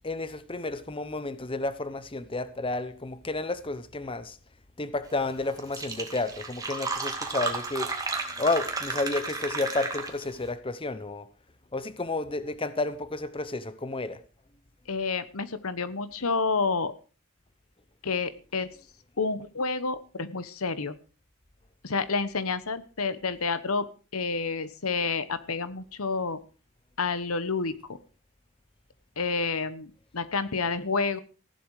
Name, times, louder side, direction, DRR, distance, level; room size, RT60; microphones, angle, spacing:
voice 1, 0.0-4.4 4.8-7.9 8.4-11.3 11.7-14.2, left 2 dB, 25° left, 0.9 m, -31 dB
Fill (with liquid), 5.3-5.4 5.6-10.4, right 3 dB, 15° right, 2.2 m, -33 dB
voice 2, 14.9-16.9 18.0-18.7 19.2-21.0 21.8-23.9 24.1-26.4 27.0-28.0 29.2-31.2, left 4 dB, 80° left, 1.2 m, -29 dB
15.5 x 11.5 x 4.9 m
head